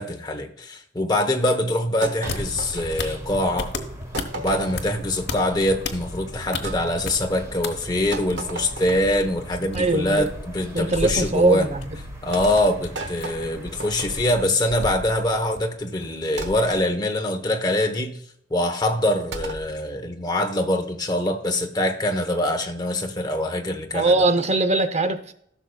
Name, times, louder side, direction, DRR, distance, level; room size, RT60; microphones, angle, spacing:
voice 1, 0.0-3.7 4.3-10.3 10.5-11.7 12.2-18.1 18.5-24.2, left 1 dB, 20° left, 0.9 m, -24 dB
sound 1, 2.0-3.4 4.1-5.0 6.6-6.8 8.1-9.2 10.9-11.3 12.3-14.4 16.4-16.9 19.3-19.7, right 2 dB, 80° right, 1.1 m, -34 dB
sound 2, 2.1-7.7 7.9-16.2, left 3 dB, 65° left, 1.1 m, -35 dB
sound 3, 2.2-14.4, equal, 20° right, 1.7 m, -38 dB
voice 2, 9.7-10.3 10.7-11.9 23.9-25.3, right 2 dB, 35° right, 0.7 m, -21 dB
14.5 x 6.4 x 2.3 m
head